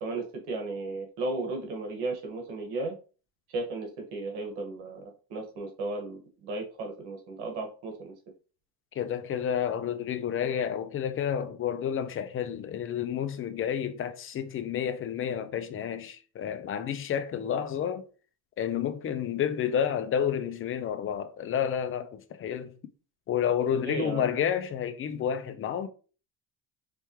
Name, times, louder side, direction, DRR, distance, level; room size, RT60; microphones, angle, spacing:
voice 1, 0.0-2.9 3.5-8.1 23.8-24.4, right 2 dB, 80° right, 1.6 m, -35 dB
voice 2, 8.9-18.0 18.6-22.7 23.3-25.9, left 8 dB, 35° left, 0.5 m, -30 dB
4.5 x 3.5 x 3.0 m
cardioid pair, 120°, 39 cm